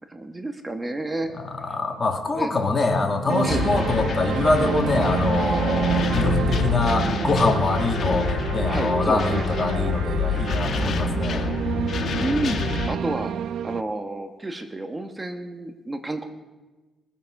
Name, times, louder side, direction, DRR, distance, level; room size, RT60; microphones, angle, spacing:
voice 1, 0.1-1.3 1.7-1.8 2.3-2.5 3.4-3.7 8.7-9.4 12.2-13.3 13.6-16.3, right 2 dB, 20° right, 6 dB, 1.3 m, -30 dB
voice 2, 1.4-11.5, left 3 dB, 30° left, 3 dB, 2.2 m, -24 dB
sound 1, 3.3-13.8, right 9 dB, 70° right, 0.4 m, -28 dB
sound 2, 3.5-13.0, left 5 dB, 55° left, 1.2 m, -27 dB
21.5 x 7.2 x 6.5 m, 1.2 s
cardioid pair, 90°, 0 cm